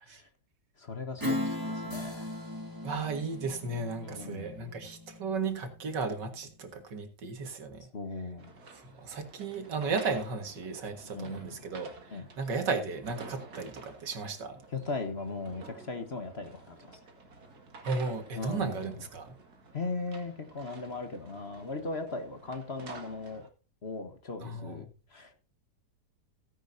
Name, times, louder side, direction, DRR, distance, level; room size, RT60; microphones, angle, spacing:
voice 1, 0.8-2.3 4.0-4.5 7.9-8.5 11.1-11.6 12.1-12.2 14.7-17.0 18.4-18.9 19.7-23.5 23.8-24.8 25.1-25.3, left 3 dB, 40° left, 7 dB, 1.5 m, -38 dB
Strum, 1.2-6.1, left 1 dB, 10° right, 1.5 m, -37 dB
sound 1, 1.9-5.5, left 1 dB, 10° left, 4.6 m, -57 dB
voice 2, 2.8-7.9 8.7-14.6 17.9-19.4 24.4-24.8, right 4 dB, 75° right, 7 dB, 2.4 m, -35 dB
sound 2, 8.4-23.5, right 3 dB, 60° right, 2.5 m, -51 dB
16.0 x 10.0 x 2.7 m, 0.34 s
omnidirectional pair, 1.9 m